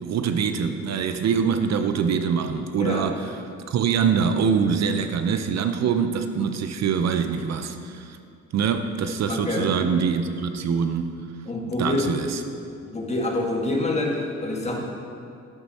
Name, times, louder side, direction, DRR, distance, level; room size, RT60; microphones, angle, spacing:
voice 1, 0.0-3.2 3.7-8.2 8.5-11.1 11.8-12.4, right 6 dB, 60° right, 8 dB, 0.6 m, -24 dB
voice 2, 2.8-3.1 9.3-9.8 11.5-12.1 12.8-14.8, left 2 dB, 20° left, 0 dB, 1.7 m, -26 dB
12.0 x 7.0 x 4.2 m, 2.4 s
cardioid pair, 90°, 30 cm